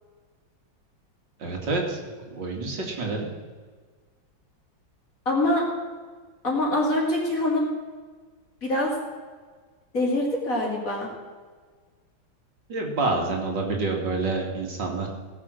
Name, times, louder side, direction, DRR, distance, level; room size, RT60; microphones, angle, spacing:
voice 1, 1.4-3.3 12.7-15.1, right 3 dB, 65° right, 1 dB, 2.8 m, -28 dB
voice 2, 5.2-5.6 6.4-7.7 8.6-9.0 9.9-11.1, left 1 dB, 40° left, -2 dB, 3.4 m, -24 dB
18.0 x 7.4 x 6.4 m, 1.5 s
omnidirectional pair, 2.2 m